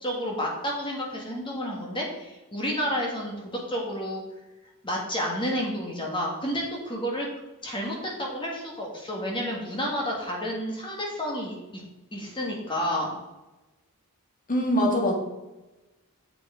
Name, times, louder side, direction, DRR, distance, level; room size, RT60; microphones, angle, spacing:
voice 1, 0.0-4.2 4.8-7.3 7.6-11.8 12.1-13.1, equal, 25° left, -1 dB, 1.6 m, -30 dB
voice 2, 14.5-15.1, equal, 40° left, 2 dB, 1.8 m, -23 dB
8.2 x 5.9 x 4.9 m, 1.0 s
head